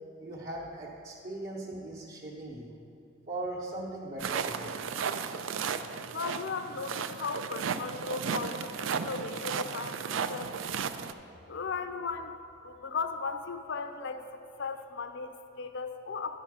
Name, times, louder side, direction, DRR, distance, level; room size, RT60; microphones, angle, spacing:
voice 1, 0.2-2.7 3.3-4.7, right 2 dB, 40° right, -5 dB, 0.9 m, -39 dB
sound 1, 4.2-11.1, right 6 dB, 60° right, 0.4 m, -34 dB
voice 2, 6.1-10.0 10.3-10.5 11.5-12.3 12.6-14.2 14.6-16.4, left 4 dB, 55° left, 8 dB, 0.6 m, -36 dB
10.5 x 5.6 x 6.0 m, 2.7 s
head